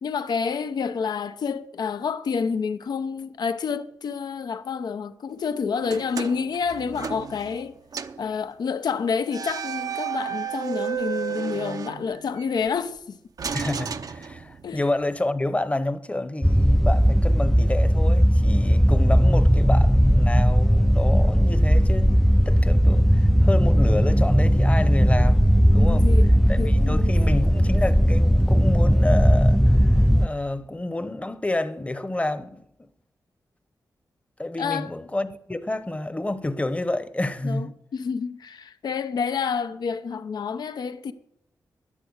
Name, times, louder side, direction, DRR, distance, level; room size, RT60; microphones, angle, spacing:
voice 1, 0.0-7.8 8.2-13.2 14.6-14.9 25.7-26.3 26.6-27.1 34.6-34.9 37.4-37.7 37.9-41.1, left 6 dB, 80° left, 0.7 m, -28 dB
sound 1, 5.8-7.7 7.9-8.3 9.3-12.5 13.4-14.8, right 8 dB, 60° right, 0.7 m, -32 dB
voice 2, 13.5-22.1 22.5-26.1 26.5-32.6 34.4-37.7, left 2 dB, 20° left, 0.9 m, -29 dB
sound 2, 16.4-30.3, equal, ahead, 0.4 m, -18 dB
11.0 x 10.0 x 8.0 m
cardioid pair, 70°, 7 cm